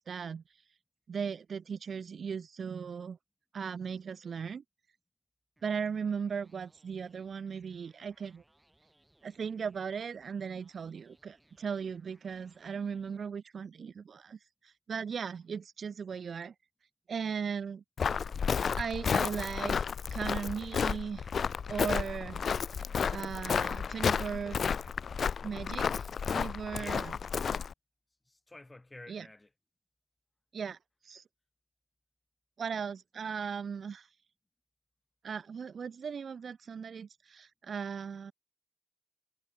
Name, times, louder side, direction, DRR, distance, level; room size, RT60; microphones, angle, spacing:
voice 1, 0.1-0.4 1.1-3.2 3.5-4.6 5.6-8.4 9.2-14.4 14.6-16.5 17.1-17.8 18.8-21.3 21.7-22.4 23.1-24.6 25.4-27.1 29.1-29.3 30.5-30.8 31.0-31.2 32.6-34.1 35.2-38.3, right 6 dB, 65° right, 0.3 m, -37 dB
sound 1, 5.6-13.2, right 1 dB, 15° right, 6.9 m, -68 dB
Walk footsteps, 18.0-27.7, left 6 dB, 65° left, 0.3 m, -32 dB
voice 2, 26.8-27.1 28.3-29.5, left 2 dB, 20° left, 2.0 m, -50 dB
cardioid pair, 55°, 0 cm